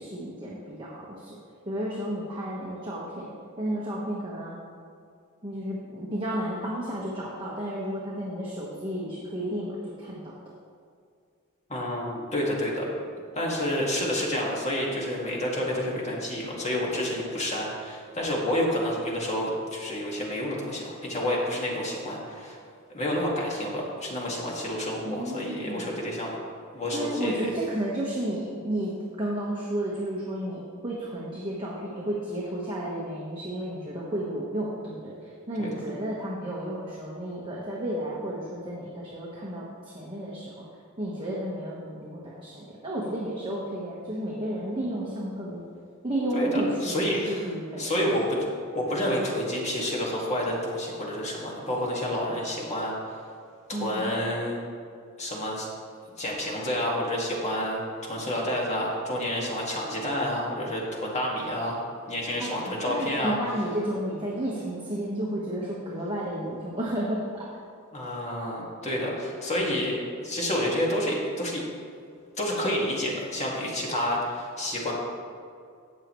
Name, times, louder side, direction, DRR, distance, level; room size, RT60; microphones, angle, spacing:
voice 1, 0.0-1.4 1.7-3.3 3.6-4.5 5.4-10.2 25.0-25.9 26.9-35.1 35.5-40.6 41.0-45.6 46.0-47.0 47.3-48.1 53.7-54.1 62.4-67.5, right 1 dB, 25° right, -6 dB, 1.3 m, -32 dB
voice 2, 11.7-12.9 13.3-22.6 22.9-26.3 26.7-27.5 35.6-35.7 46.3-47.4 47.8-48.4 48.7-53.2 53.7-54.6 55.2-55.7 56.2-63.4 67.9-71.6 72.4-74.9, left 1 dB, 30° left, -3 dB, 2.0 m, -29 dB
16.5 x 6.6 x 3.1 m, 2.2 s
head